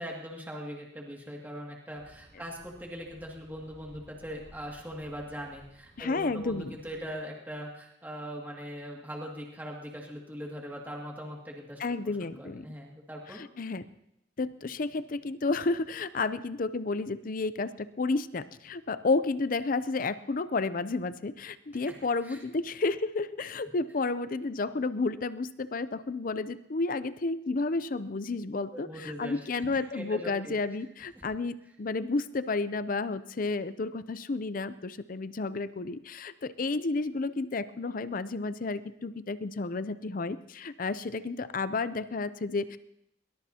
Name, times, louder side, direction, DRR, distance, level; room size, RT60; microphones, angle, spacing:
voice 1, 0.0-13.4 22.2-22.4 28.7-29.7 29.9-30.5 31.2-31.3, equal, 10° right, -2 dB, 2.3 m, -41 dB
sound 1, 1.9-7.1, equal, 70° right, 6.3 m, -57 dB
voice 2, 6.0-6.8 11.8-12.7 13.3-13.8 14.4-42.8, left 3 dB, 45° left, 14 dB, 0.5 m, -31 dB
22.0 x 20.0 x 2.9 m, 0.81 s
head